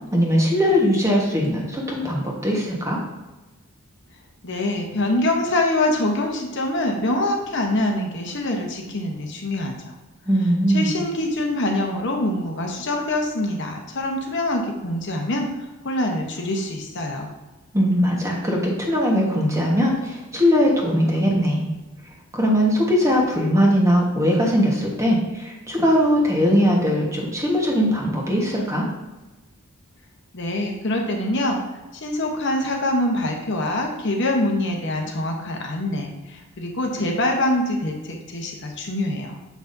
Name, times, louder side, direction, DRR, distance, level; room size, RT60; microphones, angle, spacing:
voice 1, 0.1-3.0 10.3-11.0 17.7-21.7 22.3-28.9, equal, 15° right, -2 dB, 1.2 m, -20 dB
voice 2, 4.4-9.9 10.7-17.3 30.3-31.6 32.0-39.4, left 1 dB, 55° left, 1 dB, 0.9 m, -24 dB
7.1 x 5.8 x 2.6 m, 1.1 s
head